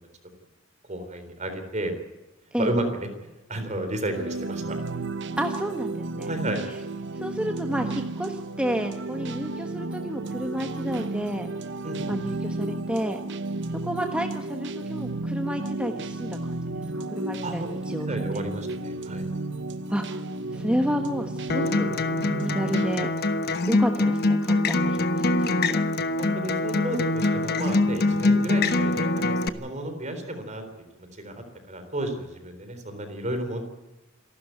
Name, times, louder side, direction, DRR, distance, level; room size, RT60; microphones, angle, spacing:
voice 1, 0.9-1.9 2.6-3.1 3.5-4.8 6.3-6.6 11.8-12.1 17.4-17.7 18.1-19.2 24.8-25.0 26.2-30.6 31.0-33.6, right 1 dB, 35° right, 7 dB, 3.9 m, -32 dB
sound 1, 4.1-23.0, right 2 dB, 60° right, 1.0 m, -33 dB
voice 2, 5.4-6.3 6.7-6.8 7.1-11.5 12.1-13.2 13.7-16.6 17.1-18.4 19.9-20.2 20.5-21.9 22.4-23.1 23.7-25.8, equal, 5° right, 4 dB, 1.2 m, -31 dB
Acoustic guitar, 21.5-29.5, left 2 dB, 50° left, 1.1 m, -24 dB
27.0 x 12.5 x 9.3 m, 1.1 s
head